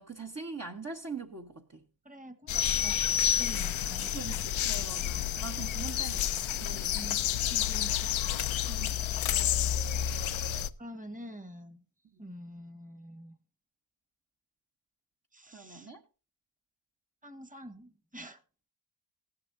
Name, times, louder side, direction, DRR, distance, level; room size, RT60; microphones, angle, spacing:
voice 1, 0.0-1.8 4.1-7.0 8.7-9.5 15.5-16.0, right 4 dB, 35° right, 1.3 m, -43 dB
voice 2, 2.0-3.0 3.4-4.2 6.9-8.1 10.8-11.8 12.2-13.4 15.3-15.9 17.2-18.4, equal, 15° right, 1.6 m, -46 dB
sound 1, 2.5-10.7, left 11 dB, 80° left, 0.7 m, -31 dB
sound 2, 2.6-4.1, left 8 dB, 40° left, 0.5 m, -29 dB
15.0 x 11.0 x 2.7 m
cardioid pair, 60°, 46 cm